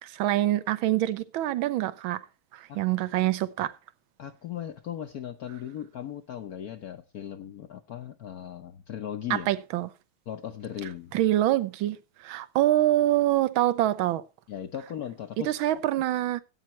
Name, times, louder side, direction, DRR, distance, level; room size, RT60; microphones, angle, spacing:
voice 1, 0.0-2.2 2.5-3.7 9.3-9.9 11.1-12.0 12.2-14.2 15.4-16.4, right 14 dB, 75° right, 1.5 m, -25 dB
voice 2, 4.2-9.5 10.3-11.1 14.5-15.5, left 10 dB, 65° left, 0.9 m, -37 dB
16.5 x 8.6 x 3.0 m
omnidirectional pair, 2.3 m